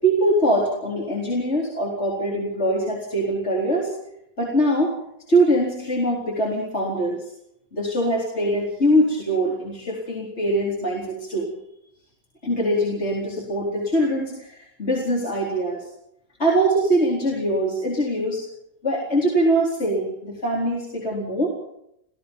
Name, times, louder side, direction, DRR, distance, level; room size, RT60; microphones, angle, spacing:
voice 1, 0.0-3.9 4.4-5.0 5.3-7.3 7.7-11.5 12.4-15.9 16.4-18.4 18.8-21.5, right 1 dB, 35° left, -4 dB, 4.4 m, -22 dB
29.0 x 17.5 x 5.4 m, 0.79 s
omnidirectional pair, 2.0 m